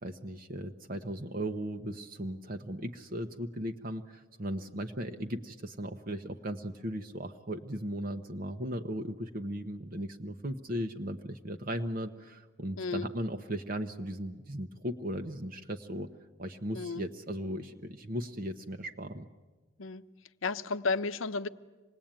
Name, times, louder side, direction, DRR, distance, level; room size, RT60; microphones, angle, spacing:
voice 1, 0.0-16.1 16.4-19.3, equal, 45° right, 6 dB, 0.9 m, -37 dB
voice 2, 12.8-13.1 16.7-17.0 19.8-20.0 20.4-21.5, left 4 dB, 80° left, 12 dB, 0.8 m, -32 dB
26.0 x 20.0 x 8.9 m, 1.3 s
head